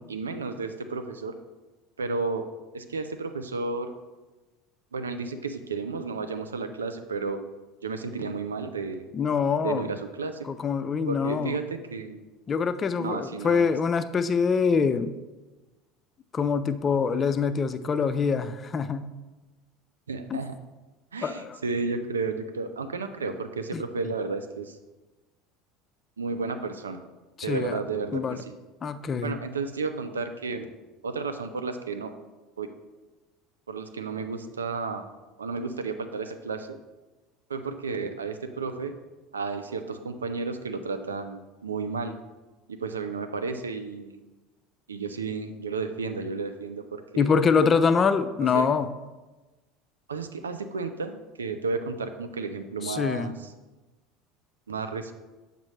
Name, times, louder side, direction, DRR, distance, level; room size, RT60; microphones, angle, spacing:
voice 1, 0.0-1.4 2.0-2.5 2.7-3.9 4.9-7.4 7.8-9.1 9.6-10.5 11.1-12.2 13.0-13.7 20.1-20.5 21.1-24.8 26.2-27.0 27.4-28.5 29.2-30.7 31.0-32.1 32.6-32.7 33.7-35.1 35.4-36.8 37.5-38.9 39.3-42.1 42.7-44.2 44.9-47.3 48.4-48.7 50.1-53.3 54.7-55.1, right 4 dB, 90° right, 8 dB, 0.4 m, -32 dB
voice 2, 9.1-9.8 10.4-11.6 12.5-15.1 16.3-19.1 20.3-20.4 21.2-21.6 23.7-23.8 27.4-27.8 28.1-28.4 28.8-29.4 47.2-48.9 52.8-53.3, left 5 dB, 35° left, 11 dB, 0.4 m, -25 dB
7.4 x 5.2 x 3.2 m, 1.2 s
hypercardioid pair, 75°, 0 cm